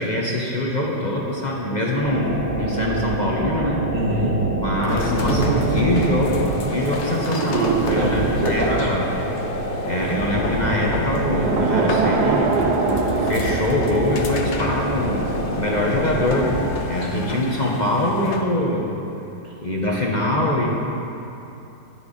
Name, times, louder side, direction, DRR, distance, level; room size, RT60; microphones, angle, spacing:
voice 1, 0.0-3.8 4.5-9.1 9.9-12.6 13.1-15.3 15.6-16.6 16.9-18.9 19.6-20.7, left 1 dB, 25° left, -3 dB, 1.3 m, -23 dB
sound 1, 2.0-16.7, right 1 dB, 25° right, 1.6 m, -27 dB
voice 2, 3.9-4.3 7.9-8.9 17.1-17.4 19.4-19.5, right 1 dB, 85° right, -4 dB, 2.7 m, -25 dB
sound 2, 4.8-18.6, left 4 dB, 50° left, 1.0 m, -31 dB
sound 3, 5.3-10.3 11.2-15.2 15.5-15.7, right 5 dB, 70° right, 1.3 m, -25 dB
15.5 x 11.5 x 4.3 m, 2.8 s
omnidirectional pair, 1.9 m